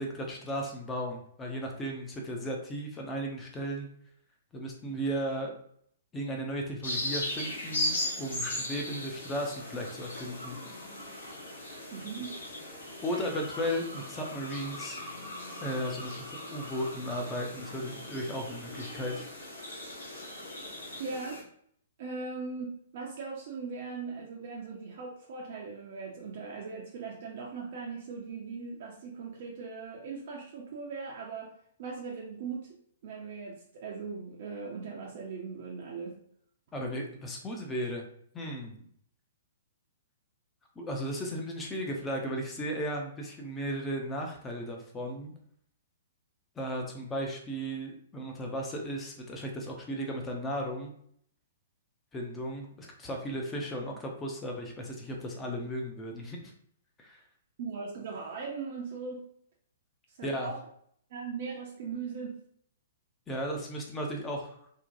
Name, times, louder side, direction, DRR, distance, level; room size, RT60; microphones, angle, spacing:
voice 1, 0.0-3.9 4.5-5.5 6.1-10.6 13.0-15.0 15.6-19.3 36.7-38.1 38.3-38.8 40.8-45.3 46.6-50.9 52.1-56.5 57.0-57.2 60.2-60.5 63.3-64.6, equal, 15° left, 1 dB, 0.6 m, -35 dB
sound 1, 6.8-21.4, left 1 dB, 65° left, 1.0 m, -38 dB
voice 2, 11.9-12.3 21.0-21.4 22.0-31.5 31.8-32.7 33.0-36.2 57.6-59.3 60.1-60.6 61.1-62.4, right 5 dB, 50° right, -3 dB, 0.5 m, -39 dB
2.7 x 2.2 x 2.5 m, 0.65 s
figure-of-eight pair, 115°, 0 cm